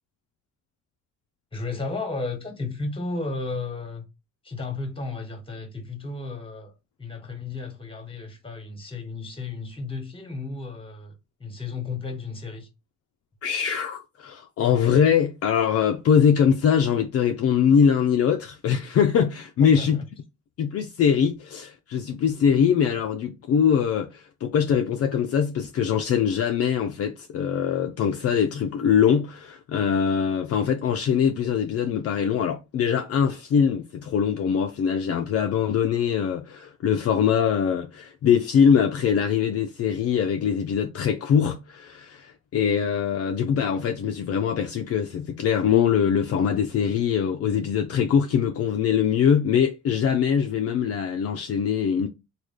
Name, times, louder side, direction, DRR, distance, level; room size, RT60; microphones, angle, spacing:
voice 1, 1.5-4.1 4.4-6.7 7.0-11.1 11.4-12.7 19.6-20.1, left 3 dB, 20° left, 1.2 m, -33 dB
voice 2, 13.4-20.0 20.6-52.1, left 7 dB, 55° left, 0.5 m, -22 dB
3.1 x 2.3 x 3.6 m
cardioid pair, 90°, 30 cm